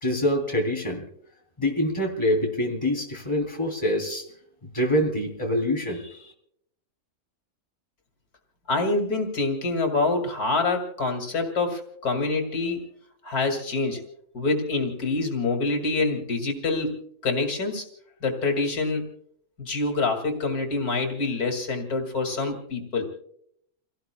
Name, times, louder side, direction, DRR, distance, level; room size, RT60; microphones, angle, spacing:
voice 1, 0.0-1.0 1.6-4.2 4.7-6.3, left 1 dB, 20° left, 0 dB, 3.3 m, -25 dB
voice 2, 8.7-12.9 13.2-14.0 14.3-16.9 17.2-17.8 18.2-19.0 19.6-23.1, left 3 dB, 80° left, 4 dB, 2.8 m, -26 dB
29.5 x 17.5 x 2.2 m, 0.68 s
omnidirectional pair, 1.6 m